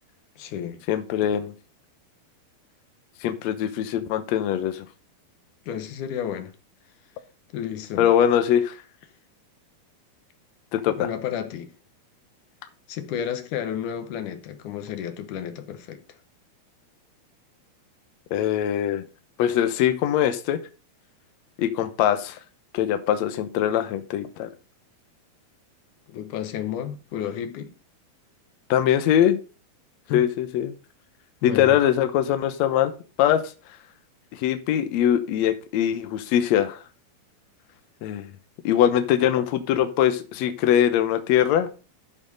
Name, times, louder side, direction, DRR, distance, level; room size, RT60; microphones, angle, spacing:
voice 1, 0.4-0.8 5.7-6.5 7.5-8.1 10.9-11.7 12.9-16.0 26.1-27.7 30.1-30.3 31.4-31.8, left 9 dB, 70° left, 2.1 m, -32 dB
voice 2, 0.9-1.5 3.2-4.8 8.0-8.7 10.7-11.1 18.3-19.0 19.4-20.6 21.6-22.4 22.7-24.5 28.7-29.4 30.1-30.7 31.4-32.9 33.2-33.4 34.3-36.8 38.0-38.3 38.6-41.7, left 10 dB, 85° left, 1.5 m, -22 dB
13.0 x 4.5 x 5.2 m
omnidirectional pair, 4.4 m